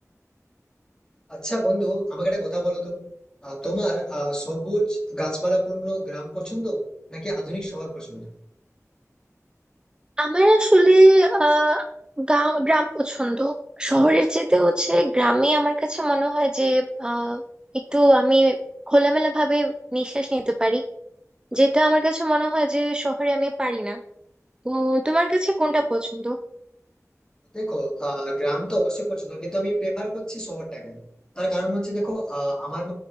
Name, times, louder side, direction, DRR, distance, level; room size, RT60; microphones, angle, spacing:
voice 1, 1.3-3.1 3.4-8.4 27.5-31.0 31.3-32.9, right 1 dB, 15° left, -2 dB, 2.2 m, -27 dB
voice 2, 10.2-11.8 12.2-17.4 17.9-18.6 18.9-20.8 21.5-24.0 24.7-26.4, right 1 dB, 15° right, 5 dB, 0.5 m, -20 dB
5.1 x 4.5 x 4.5 m, 0.75 s
wide cardioid pair, 40°, 6 cm